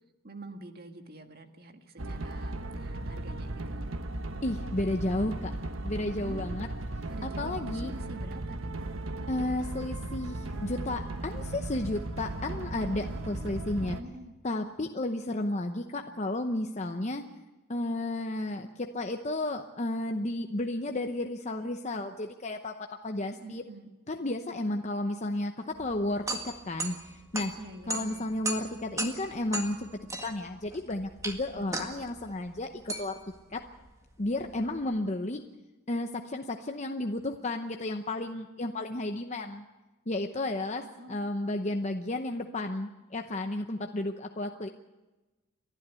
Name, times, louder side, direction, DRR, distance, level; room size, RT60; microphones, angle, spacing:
voice 1, 0.2-3.8 6.2-6.6 7.0-8.8 9.2-9.8 13.0-14.3 23.3-23.9 27.5-28.3 31.5-31.9 40.8-41.5, right 1 dB, 45° right, 6 dB, 1.7 m, -47 dB
sound 1, 2.0-14.0, right 2 dB, 70° right, 1.1 m, -36 dB
voice 2, 4.4-5.5 5.8-6.7 7.2-7.9 9.3-14.0 14.4-17.2 17.7-23.6 24.1-27.5 27.9-29.9 30.2-33.2 33.5-33.6 34.2-35.4 35.9-39.6 40.1-44.7, left 1 dB, 35° left, 5 dB, 0.8 m, -33 dB
sound 2, 25.8-34.9, right 2 dB, 15° right, 1.8 m, -38 dB
30.0 x 12.0 x 8.3 m, 1.1 s
head